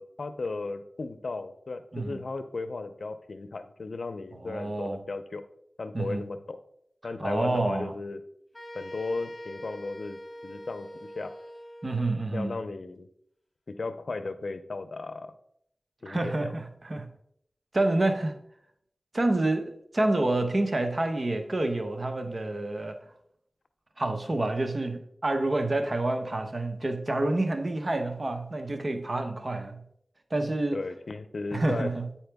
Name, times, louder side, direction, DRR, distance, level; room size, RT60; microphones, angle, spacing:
voice 1, 0.0-5.4 5.8-6.6 7.0-8.2 8.7-10.9 11.1-11.3 12.3-13.1 13.7-15.3 16.0-16.6 30.7-31.9, left 3 dB, 75° left, 0.5 m, -35 dB
voice 2, 4.3-5.0 5.9-6.3 7.2-7.9 11.8-12.6 16.1-17.1 17.7-18.4 19.1-23.0 24.0-29.8 30.3-30.8 31.5-32.1, right 2 dB, 50° right, 0.9 m, -28 dB
sound 1, 8.5-12.2, equal, 30° left, 1.6 m, -44 dB
8.8 x 4.4 x 3.5 m
cardioid pair, 40°, 0 cm